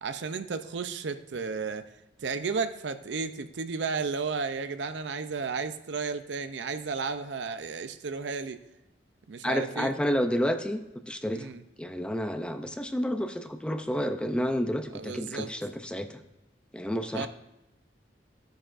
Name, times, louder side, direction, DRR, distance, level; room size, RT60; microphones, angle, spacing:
voice 1, 0.0-1.8 2.2-8.6 9.3-9.9 11.3-11.6 14.9-15.5 17.1-17.3, right 4 dB, 80° right, 10 dB, 0.5 m, -33 dB
voice 2, 9.4-11.5 11.8-16.2 16.7-17.3, equal, 5° left, 8 dB, 0.5 m, -30 dB
14.0 x 9.0 x 2.5 m, 0.89 s
head